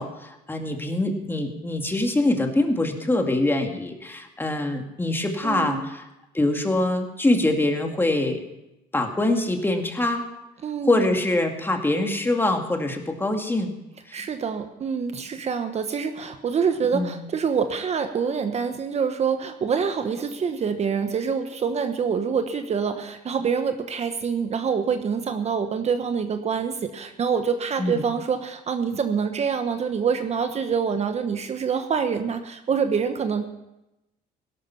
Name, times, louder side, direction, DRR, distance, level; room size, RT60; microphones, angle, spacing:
voice 1, 0.0-6.0 6.3-8.4 8.9-10.2 10.8-13.7 14.1-14.2 16.9-17.2 27.8-28.0, left 2 dB, 15° left, 4 dB, 2.1 m, -24 dB
voice 2, 5.4-5.9 10.6-11.1 14.1-33.4, right 6 dB, 40° right, 7 dB, 1.1 m, -26 dB
17.0 x 12.0 x 5.8 m, 0.93 s
cardioid pair, 110°, 17 cm